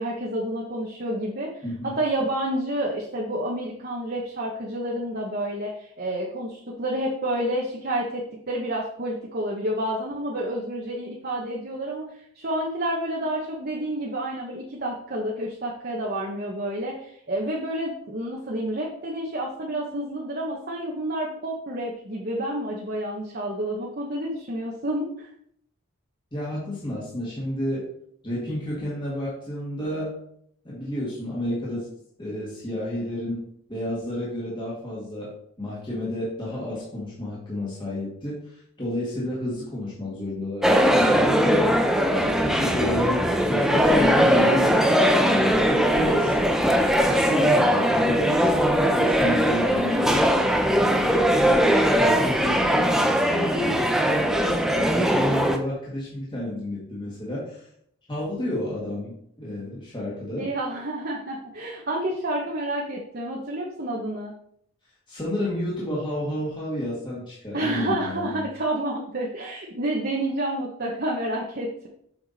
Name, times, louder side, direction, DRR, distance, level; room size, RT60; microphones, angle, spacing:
voice 1, 0.0-25.3 60.4-64.3 67.5-71.9, right 1 dB, 45° right, -3 dB, 1.1 m, -29 dB
voice 2, 1.6-2.0 26.3-27.9 28.2-30.2 30.6-31.9 32.2-35.3 35.6-41.7 42.2-44.8 45.3-46.4 47.0-48.6 48.9-50.3 50.8-51.6 52.0-52.9 53.2-57.7 58.1-60.5 65.1-68.5, left 1 dB, 20° left, -6 dB, 2.0 m, -30 dB
sound 1, 40.6-55.6, equal, ahead, 0.6 m, -20 dB
8.0 x 6.0 x 4.2 m, 0.70 s
head